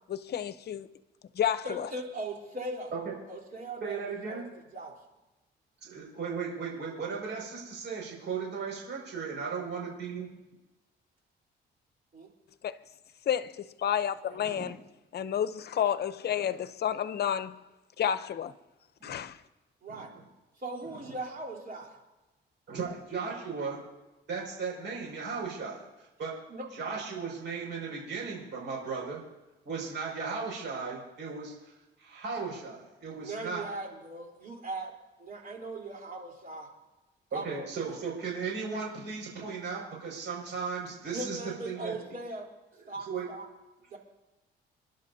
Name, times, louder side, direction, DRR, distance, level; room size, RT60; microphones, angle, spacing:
voice 1, 0.1-0.9 1.3-1.9 12.6-12.8 13.3-14.8 15.1-17.6 18.0-18.5 19.0-19.4, left 9 dB, 55° left, 0.7 m, -30 dB
voice 2, 1.6-2.9 3.3-4.5 4.7-4.9 12.1-12.3 19.8-20.1 20.6-22.0 26.5-26.7 33.2-34.9 35.2-36.7 37.3-38.0 41.1-42.5 42.9-43.5 43.9-44.0, right 2 dB, 45° right, 3.7 m, -39 dB
voice 3, 3.8-4.4 5.8-10.3 14.4-14.7 16.4-16.5 19.0-19.1 19.9-20.0 20.8-21.2 22.7-23.8 24.3-26.3 26.7-29.2 29.6-31.7 32.0-33.6 37.3-41.9 43.1-43.3, right 5 dB, 65° right, 5.7 m, -36 dB
29.0 x 11.5 x 2.7 m
cardioid pair, 90°, 20 cm